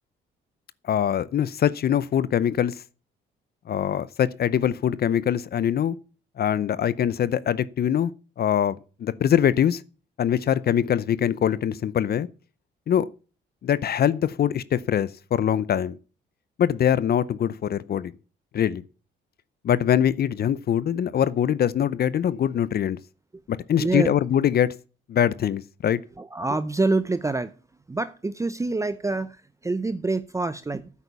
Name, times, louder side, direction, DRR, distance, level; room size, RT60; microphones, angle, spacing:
voice 1, 0.8-2.8 3.7-6.0 6.4-8.1 8.4-9.8 10.2-12.3 12.9-13.1 13.6-16.0 16.6-18.1 18.5-18.8 19.6-23.0 23.5-24.7 25.1-26.0, left 9 dB, 50° left, 0.6 m, -23 dB
voice 2, 23.8-24.1 26.2-27.5 27.9-30.9, right 3 dB, 15° right, 0.6 m, -26 dB
9.8 x 8.3 x 6.9 m
cardioid pair, 90°, 20 cm